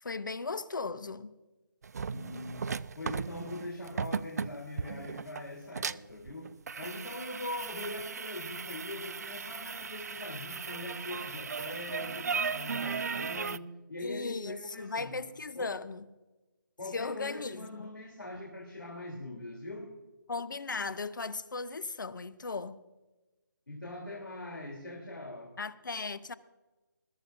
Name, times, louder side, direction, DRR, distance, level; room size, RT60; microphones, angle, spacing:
voice 1, 0.0-1.3 14.0-16.1 16.9-17.9 20.3-22.8 25.6-26.3, left 4 dB, 65° left, 0.8 m, -37 dB
sound 1, 1.8-13.6, right 5 dB, 50° right, 0.4 m, -37 dB
voice 2, 2.1-6.5 6.8-15.2 15.5-15.7 16.8-19.9 23.7-25.5, left 2 dB, 85° left, 3.2 m, -42 dB
21.5 x 13.5 x 2.6 m
figure-of-eight pair, 155°, 11 cm